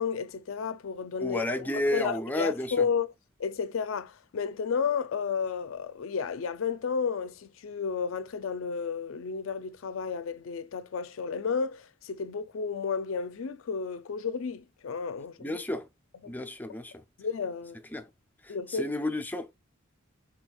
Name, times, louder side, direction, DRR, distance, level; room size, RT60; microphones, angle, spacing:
voice 1, 0.0-3.1 3.4-15.6 16.2-16.5 17.2-17.8 18.5-18.9, left 6 dB, 70° left, 0.4 m, -32 dB
voice 2, 1.2-2.8 15.4-15.9 16.3-17.0 17.9-18.1 18.4-19.5, left 1 dB, 10° left, 0.5 m, -32 dB
4.2 x 4.2 x 2.3 m
head